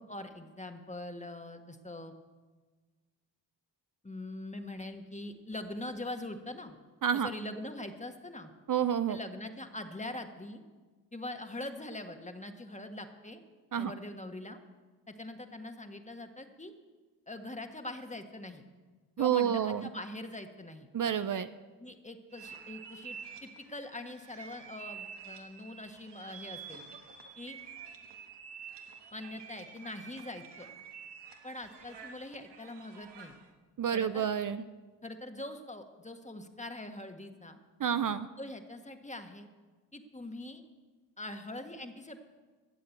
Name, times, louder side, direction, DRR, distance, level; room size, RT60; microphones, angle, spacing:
voice 1, 0.1-2.2 4.0-6.8 7.1-8.5 9.1-10.6 11.1-13.4 13.8-14.6 15.1-16.7 17.3-18.6 19.2-20.9 21.8-26.8 27.4-27.6 29.1-30.7 31.4-33.3 33.9-34.3 35.0-37.6 38.4-39.5 39.9-40.6 41.2-42.2, left 1 dB, 15° left, 6 dB, 1.6 m, -43 dB
voice 2, 8.7-9.2 13.7-13.9 19.2-19.8 20.9-21.5 33.8-34.6 37.8-38.3, right 9 dB, 45° right, 11 dB, 0.6 m, -29 dB
sound 1, 22.3-33.5, right 6 dB, 65° right, 1.7 m, -49 dB
13.5 x 7.4 x 8.5 m, 1.3 s
cardioid pair, 55°, 44 cm